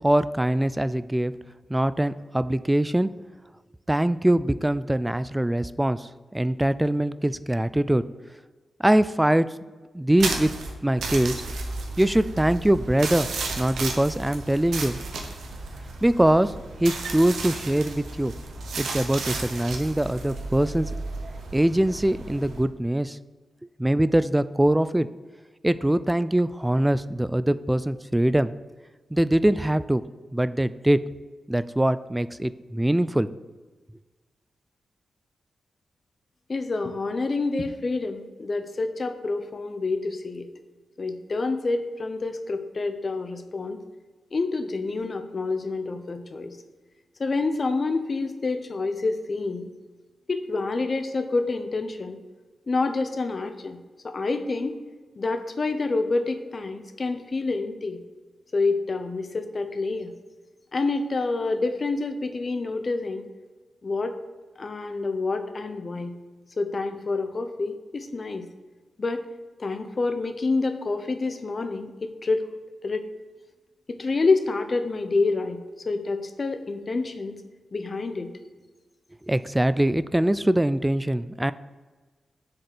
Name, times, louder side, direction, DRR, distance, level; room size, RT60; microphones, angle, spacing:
voice 1, 0.0-1.3 1.7-3.1 3.9-8.0 8.8-9.5 9.9-10.5 10.8-11.3 12.0-13.3 13.6-15.1 16.0-16.5 16.8-18.3 18.8-20.9 21.5-23.2 23.8-25.1 25.6-28.5 29.1-30.0 30.3-31.0 31.5-33.3 79.3-81.5, right 1 dB, 10° right, 15 dB, 0.3 m, -23 dB
sound 1, 10.2-22.6, right 3 dB, 90° right, 1.0 m, -33 dB
voice 2, 36.5-40.5 41.0-43.8 44.3-46.6 47.2-49.7 50.3-52.2 52.7-54.8 55.2-58.0 58.5-60.1 60.7-63.3 63.8-64.1 64.6-66.2 66.6-68.5 69.0-69.2 69.6-72.5 72.8-73.0 73.9-77.4 77.7-78.3, left 3 dB, 45° left, 7 dB, 0.7 m, -27 dB
6.5 x 4.1 x 6.1 m, 1.3 s
cardioid pair, 75°, 0 cm